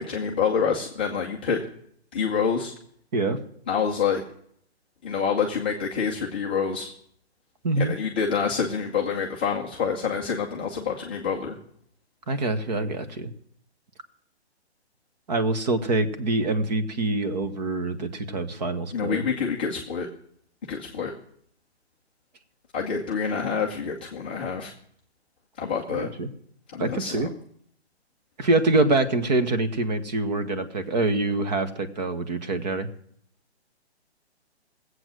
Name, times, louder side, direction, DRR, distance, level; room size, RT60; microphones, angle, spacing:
voice 1, 0.0-1.6 2.1-2.7 3.7-4.2 5.0-6.9 7.8-11.6 18.9-20.1 20.7-21.1 22.7-24.7 25.6-26.1 26.7-27.3, left 6 dB, 10° left, -5 dB, 0.5 m, -27 dB
voice 2, 12.3-13.3 15.3-19.2 25.9-26.3 26.8-27.3 28.4-32.9, right 2 dB, 40° right, 12 dB, 1.4 m, -25 dB
17.5 x 8.1 x 6.2 m, 0.66 s
hypercardioid pair, 160°, 33 cm